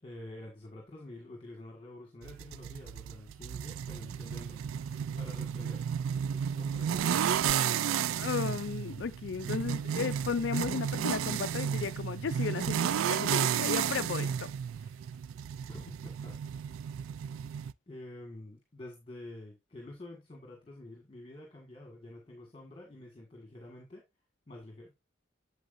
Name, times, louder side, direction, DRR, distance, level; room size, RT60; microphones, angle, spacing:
voice 1, 0.0-5.9 6.3-7.4 15.7-16.4 17.9-24.0 24.5-24.9, left 1 dB, 25° left, 1.6 m, -48 dB
sound 1, 2.2-17.7, right 8 dB, 90° right, 0.3 m, -33 dB
voice 2, 8.2-14.5, left 5 dB, 65° left, 0.4 m, -34 dB
7.8 x 7.3 x 2.5 m
head